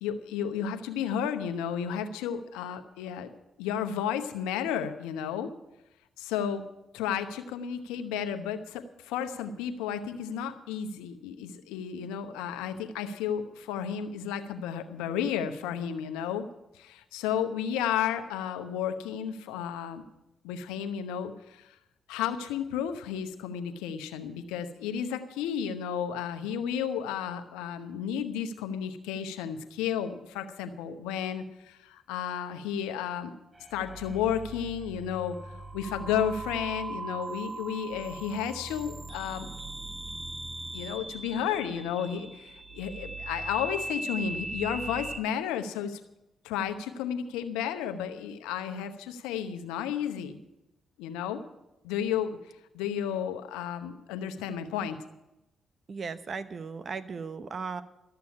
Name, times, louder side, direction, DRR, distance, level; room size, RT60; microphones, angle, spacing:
voice 1, 0.0-3.3 3.6-5.5 6.2-6.6 6.9-16.5 16.7-20.0 20.4-21.8 22.1-33.3 33.7-39.5 40.7-46.0 46.4-50.4 51.0-51.4 51.8-52.4 52.7-55.0, left 8 dB, 90° left, 8 dB, 0.8 m, -32 dB
sound 1, 33.5-45.2, right 2 dB, 30° right, 1.1 m, -39 dB
voice 2, 55.9-57.8, right 5 dB, 50° right, 13 dB, 0.9 m, -36 dB
12.5 x 6.9 x 9.7 m, 0.93 s
supercardioid pair, 50°, 0 cm